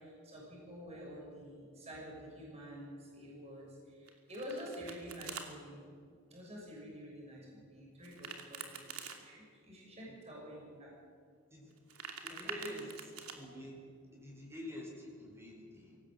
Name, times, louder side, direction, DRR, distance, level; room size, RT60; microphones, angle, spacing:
voice 1, 0.0-5.8 6.3-8.9 9.2-10.9 12.4-12.6, equal, 30° right, -3 dB, 6.7 m, -48 dB
Domestic sounds home sounds, 4.1-5.5 8.0-9.2 11.7-13.4, right 6 dB, 80° right, 2.7 m, -46 dB
voice 2, 12.2-13.8 14.1-16.0, equal, 10° right, -1 dB, 4.9 m, -47 dB
24.0 x 18.0 x 8.0 m, 2.2 s
head